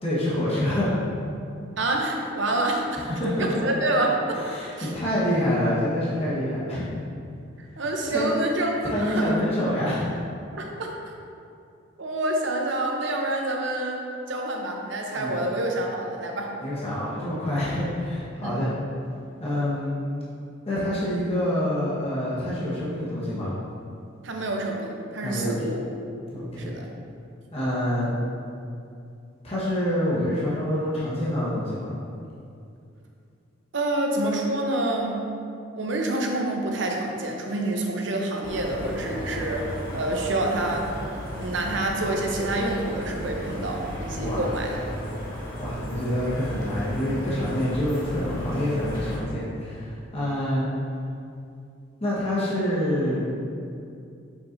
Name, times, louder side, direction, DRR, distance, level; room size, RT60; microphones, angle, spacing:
voice 1, 0.0-1.0 3.1-3.6 4.3-6.9 8.1-8.3 8.8-10.2 15.2-15.4 16.6-18.7 19.4-19.9 20.6-23.5 25.2-25.6 26.3-26.7 27.5-28.1 29.4-31.9 44.2-44.4 45.6-50.7 52.0-53.2, left 1 dB, 30° left, -9 dB, 1.3 m, -26 dB
voice 2, 1.8-3.0 3.4-4.4 4.7-4.9 7.8-9.3 10.5-11.1 12.0-14.0 14.3-16.6 18.4-18.6 24.2-25.8 26.6-26.9 33.7-35.3 35.8-40.9 41.4-44.8, right 1 dB, 65° right, 1 dB, 0.8 m, -27 dB
sound 1, 38.4-49.2, equal, 85° left, 1.3 m, -34 dB
6.9 x 5.9 x 2.7 m, 2.5 s
head